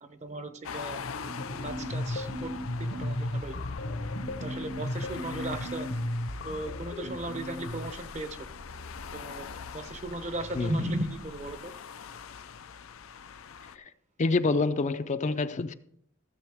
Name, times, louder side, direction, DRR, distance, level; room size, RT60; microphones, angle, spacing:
voice 1, 0.0-1.0 1.6-2.5 2.8-3.6 4.3-5.9 6.4-8.4 9.1-9.5 9.7-11.7, right 1 dB, 35° right, 0.8 m, -36 dB
sound 1, 0.6-13.8, left 7 dB, 90° left, 0.6 m, -43 dB
sound 2, 0.8-7.9, left 1 dB, 65° left, 0.9 m, -35 dB
Church bell, 1.4-11.6, equal, 70° right, 3.3 m, -50 dB
voice 2, 14.2-15.7, left 3 dB, 35° left, 0.4 m, -27 dB
16.0 x 7.1 x 3.5 m
head